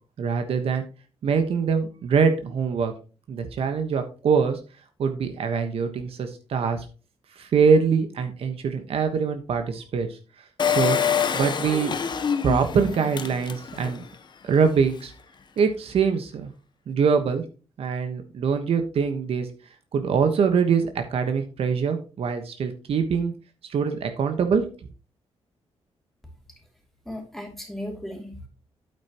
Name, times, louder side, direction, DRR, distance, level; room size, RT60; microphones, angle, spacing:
voice 1, 0.2-0.8 1.2-2.9 3.3-4.6 5.0-6.8 7.4-10.2 10.7-11.0 11.3-12.0 12.4-14.0 14.4-15.1 15.6-16.5 16.9-17.4 17.8-19.5 19.9-23.3 23.7-24.6, right 6 dB, 65° right, 7 dB, 1.2 m, -23 dB
Engine, 10.6-14.1 14.5-14.6 14.8-14.9, left 7 dB, 45° left, 0.9 m, -26 dB
voice 2, 27.0-28.5, left 1 dB, ahead, 0 dB, 2.9 m, -36 dB
8.9 x 8.9 x 3.0 m, 0.35 s
wide cardioid pair, 135°, 11 cm